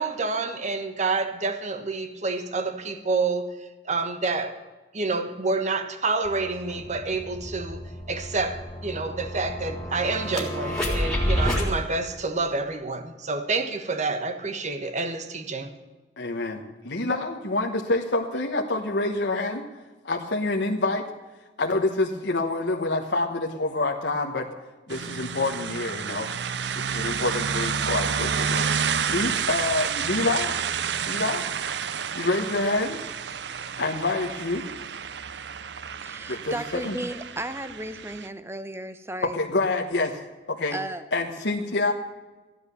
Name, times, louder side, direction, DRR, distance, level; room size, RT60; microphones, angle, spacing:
voice 1, 0.0-4.6 4.9-15.8, right 3 dB, 40° right, 1.3 m, -28 dB
sound 1, 6.2-6.3 6.7-11.7, equal, 5° left, 3.3 m, -29 dB
voice 2, 16.2-19.7 20.0-21.1 21.6-24.5 24.9-26.3 26.8-28.7 29.1-30.5 31.1-31.4 32.1-33.0 33.8-34.7 36.3-37.0 39.2-40.2 40.5-40.8 41.1-41.9, left 2 dB, 75° left, 1.3 m, -27 dB
sound 2, 24.9-38.3, right 7 dB, 70° right, 0.6 m, -30 dB
voice 3, 36.0-39.4 40.7-41.0, right 1 dB, 15° right, 0.9 m, -34 dB
15.0 x 10.5 x 6.9 m
head